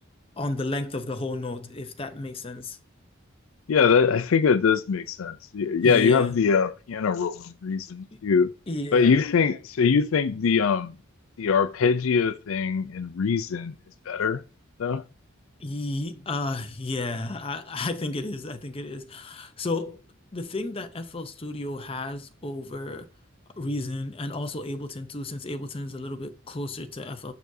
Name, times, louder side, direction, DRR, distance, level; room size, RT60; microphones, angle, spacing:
voice 1, 0.4-2.8 5.8-6.5 8.1-8.2 8.7-9.2 15.6-20.0 20.3-23.1 23.6-27.3, left 2 dB, 25° left, 0.7 m, -32 dB
voice 2, 3.7-8.5 8.9-10.9 11.4-13.8 14.1-14.4 14.8-15.0, left 5 dB, 75° left, 0.4 m, -22 dB
6.8 x 6.1 x 2.7 m
head